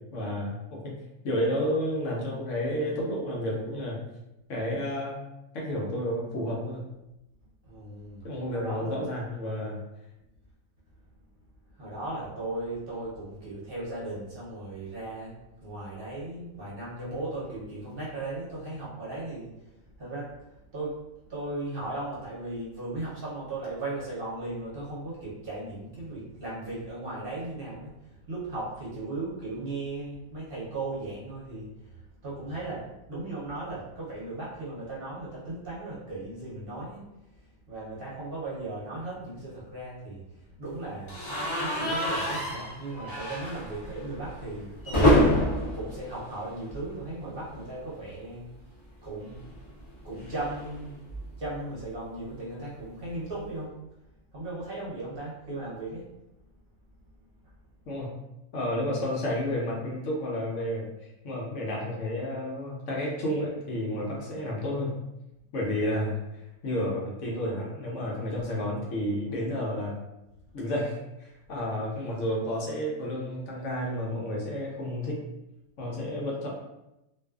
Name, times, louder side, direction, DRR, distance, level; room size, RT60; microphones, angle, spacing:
voice 1, 0.1-4.0 4.5-5.2 5.5-6.9 8.2-9.8 57.9-58.1 58.5-60.8 61.2-65.0 65.5-70.0 70.5-75.2 75.8-76.5, left 1 dB, 70° left, -3 dB, 0.9 m, -31 dB
voice 2, 7.6-8.2 8.5-9.0 11.8-15.3 15.6-19.5 20.0-21.0 21.3-27.9 28.3-37.1 37.7-40.2 40.6-41.1 41.6-45.4 45.7-48.4 49.0-49.4 50.0-51.0 51.4-53.7 54.3-56.1, right 2 dB, 50° right, -7 dB, 0.9 m, -37 dB
sound 1, 41.1-47.1 47.4-47.6 47.9-48.0 49.2-51.6, equal, 35° left, 0.5 m, -28 dB
2.5 x 2.3 x 2.3 m, 0.91 s
omnidirectional pair, 1.4 m